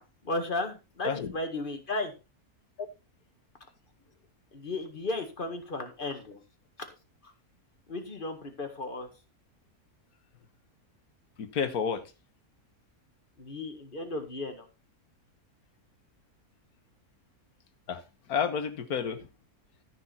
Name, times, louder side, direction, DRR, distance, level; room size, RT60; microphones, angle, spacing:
voice 1, 0.2-2.1 4.5-6.4 7.2-7.3 7.9-9.1 13.4-14.7, left 2 dB, 35° left, 2.1 m, -34 dB
voice 2, 11.4-12.0 17.9-18.0 18.3-19.3, left 6 dB, 85° left, 1.7 m, -30 dB
14.0 x 6.4 x 4.3 m
omnidirectional pair, 1.5 m